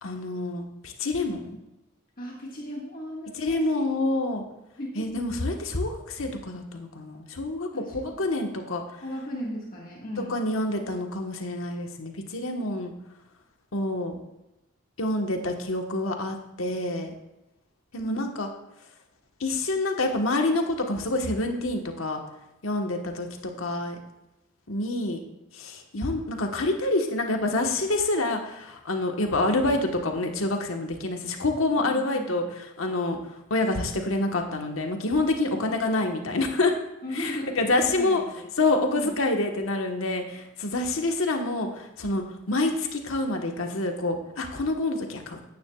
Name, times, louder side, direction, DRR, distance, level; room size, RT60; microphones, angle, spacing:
voice 1, 0.0-1.6 3.3-4.4 4.9-8.8 10.3-12.9 13.7-14.1 15.0-17.1 17.9-18.5 19.4-22.2 22.6-23.3 23.6-24.0 24.7-25.2 25.5-32.4 32.8-36.7 37.1-38.2 38.6-45.4, left 2 dB, 75° left, 3 dB, 1.3 m, -27 dB
voice 2, 2.2-3.9 4.8-5.2 7.7-7.9 9.0-10.3 18.0-18.3 31.8-32.5 35.2-35.9 37.0-38.5 38.9-39.1, equal, 40° left, -3 dB, 1.7 m, -37 dB
14.0 x 9.7 x 2.4 m, 0.92 s
head